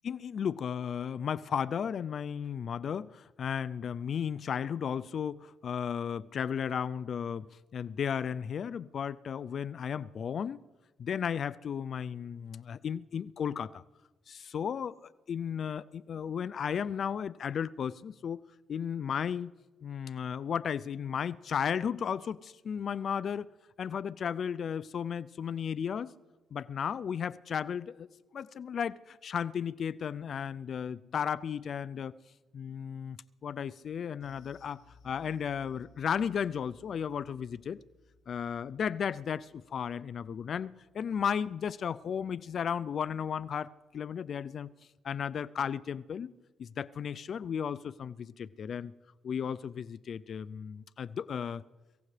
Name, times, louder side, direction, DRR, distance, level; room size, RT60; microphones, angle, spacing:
voice 1, 0.0-10.6 11.0-13.8 14.3-18.4 18.7-19.5 19.8-23.5 23.8-26.1 26.5-28.1 28.3-32.1 32.5-33.2 33.4-34.8 35.0-37.8 38.3-44.7 45.0-46.3 46.6-48.9 49.2-51.6, left 7 dB, 55° left, 0.4 m, -34 dB
sound 1, 34.2-42.9 43.2-43.4 43.8-43.9, left 3 dB, 80° left, 2.1 m, -63 dB
25.0 x 15.0 x 3.3 m
cardioid pair, 90°, 0 cm